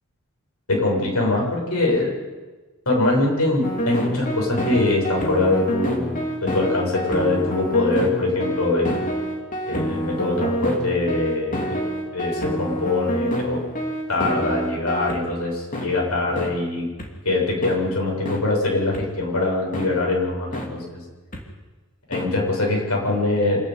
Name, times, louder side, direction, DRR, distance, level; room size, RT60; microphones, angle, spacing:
voice 1, 0.7-2.1 2.9-9.0 9.6-11.8 12.1-13.6 14.1-16.9 17.2-21.0 22.1-23.6, left 2 dB, 80° left, -1 dB, 7.7 m, -23 dB
sound 1, 3.6-15.2 15.7-15.9 16.4-16.5 17.0-17.1 17.6-17.8 18.3-18.4 18.9-19.0 19.7-19.9 20.5-20.7 21.3-21.4 22.1-22.3, right 1 dB, 35° left, 2.9 m, -27 dB
26.0 x 11.5 x 9.6 m, 1.2 s
head